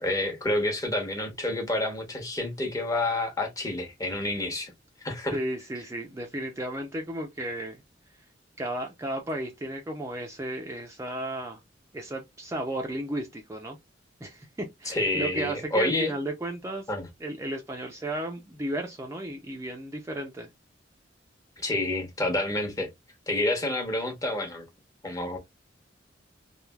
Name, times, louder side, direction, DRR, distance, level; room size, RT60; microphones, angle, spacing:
voice 1, 0.0-4.7 5.0-5.4 14.9-16.1 16.9-17.1 21.6-22.9 23.3-24.7 25.0-25.4, left 1 dB, 20° left, 0.9 m, -28 dB
voice 2, 5.3-7.8 8.6-11.6 11.9-13.8 14.2-16.9 17.2-20.5, right 1 dB, 15° right, 0.5 m, -34 dB
3.2 x 2.4 x 2.2 m
head